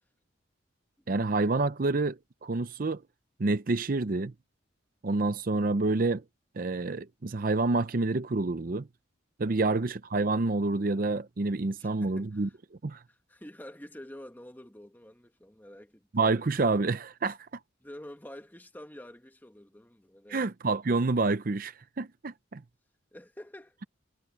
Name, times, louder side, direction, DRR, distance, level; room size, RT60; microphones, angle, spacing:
voice 1, 1.1-3.0 3.4-4.3 5.0-6.2 6.6-8.9 9.4-12.5 12.8-13.0 16.1-17.4 20.3-22.6, right 3 dB, 45° right, 0.6 m, -28 dB
voice 2, 11.8-12.6 13.1-16.4 17.8-20.5 23.1-23.8, left 1 dB, 10° left, 1.7 m, -48 dB
head